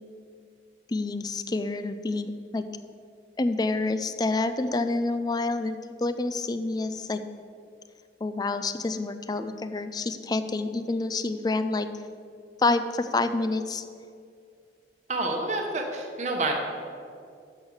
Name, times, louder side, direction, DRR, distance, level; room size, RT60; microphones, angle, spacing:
voice 1, 0.9-2.6 3.4-7.2 8.2-11.9 12.6-13.8, left 3 dB, 20° left, 11 dB, 0.3 m, -28 dB
voice 2, 15.1-16.5, right 2 dB, 40° right, 1 dB, 1.0 m, -28 dB
6.4 x 6.3 x 7.0 m, 2.4 s
head